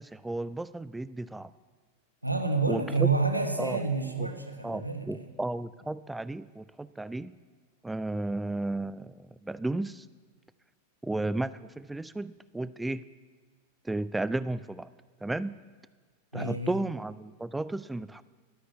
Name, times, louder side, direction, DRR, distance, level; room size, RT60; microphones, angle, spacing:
voice 1, 0.0-1.5 2.7-3.1 3.6-3.8 4.6-7.3 7.8-9.1 9.5-10.0 11.0-13.0 13.9-14.9 15.2-15.5 16.3-18.2, right 2 dB, 5° right, 17 dB, 0.3 m, -33 dB
voice 2, 2.2-5.3 16.3-16.8, right 4 dB, 85° right, 6 dB, 1.3 m, -29 dB
12.5 x 10.0 x 8.1 m, 1.5 s
figure-of-eight pair, 90°, 0 cm